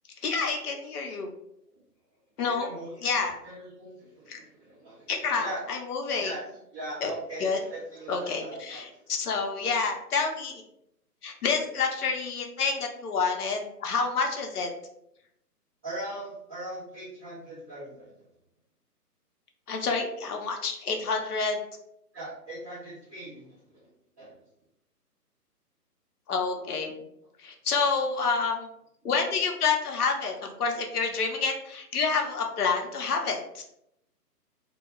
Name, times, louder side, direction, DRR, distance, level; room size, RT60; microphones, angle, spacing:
voice 1, 0.2-1.3 2.4-2.7 3.0-3.3 4.3-4.4 5.1-6.3 7.0-7.1 7.4-7.6 8.1-8.9 9.2-10.6 11.2-14.7 19.7-21.6 26.3-26.9 27.4-28.7 29.0-33.6, left 4 dB, 70° left, 3 dB, 0.7 m, -28 dB
voice 2, 2.5-3.1 3.4-5.1 5.4-5.6 6.2-6.4 6.7-9.1 15.8-18.1 22.1-23.6 24.2-24.3, right 1 dB, 15° right, -12 dB, 1.0 m, -40 dB
2.2 x 2.2 x 3.0 m, 0.79 s
figure-of-eight pair, 145°, 48 cm